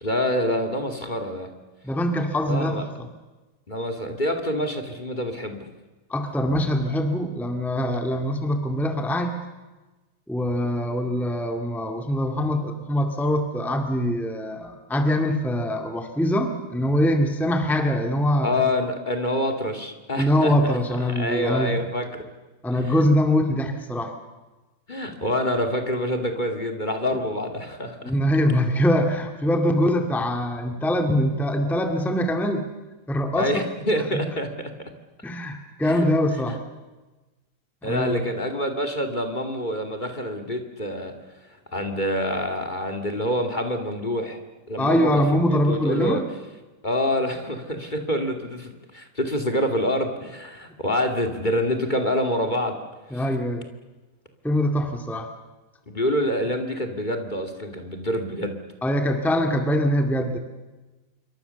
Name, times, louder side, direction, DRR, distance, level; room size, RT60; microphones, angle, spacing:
voice 1, 0.0-1.5 2.5-2.8 3.7-5.7 18.4-22.1 22.7-23.0 24.9-28.1 33.4-34.9 35.8-36.1 36.3-36.6 37.8-41.1 41.7-44.4 44.7-46.2 46.8-52.8 53.1-53.2 55.8-58.6, left 1 dB, 20° left, 5 dB, 1.6 m, -27 dB
voice 2, 1.8-3.1 6.1-9.3 10.3-18.5 20.2-21.8 22.6-24.1 28.0-32.7 33.1-33.6 35.2-36.6 37.8-38.3 44.8-46.2 53.1-53.7 54.4-55.3 58.8-60.4, equal, ahead, 5 dB, 0.5 m, -23 dB
27.5 x 24.0 x 7.0 m, 1.2 s
omnidirectional pair, 4.3 m